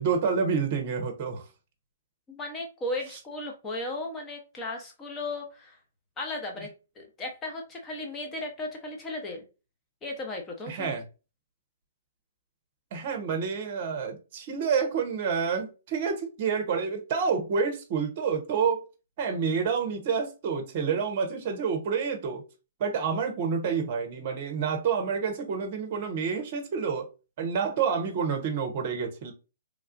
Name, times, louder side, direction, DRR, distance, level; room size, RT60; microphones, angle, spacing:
voice 1, 0.0-1.4 10.7-11.0 12.9-18.8 19.2-22.4 22.8-27.1 27.4-29.3, right 6 dB, 45° right, 0.7 m, -28 dB
voice 2, 2.3-5.8 6.2-6.7 7.0-9.4 10.0-10.9, left 2 dB, 20° left, 0.8 m, -35 dB
3.1 x 2.3 x 2.4 m
hypercardioid pair, 125°, 0 cm